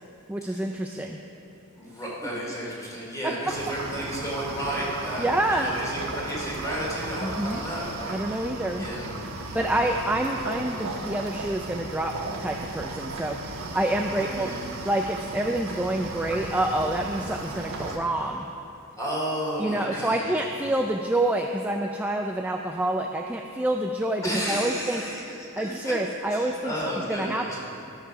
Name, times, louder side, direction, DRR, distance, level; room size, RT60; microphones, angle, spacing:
voice 1, 0.3-1.2 5.2-5.7 7.2-7.6 8.1-8.9 9.5-12.1 12.4-14.5 14.9-18.5 19.6-25.0 25.6-26.7 27.1-27.5, right 1 dB, 5° right, 2 dB, 0.3 m, -27 dB
voice 2, 1.7-5.3 5.6-8.5 8.8-9.1 9.4-9.9 14.1-14.6 18.9-20.3 24.2-25.2 25.6-25.9 26.3-27.6, equal, 15° left, -5 dB, 2.7 m, -32 dB
sound 1, 3.5-18.0, right 2 dB, 70° right, 1.2 m, -36 dB
13.0 x 6.8 x 6.0 m, 2.8 s
head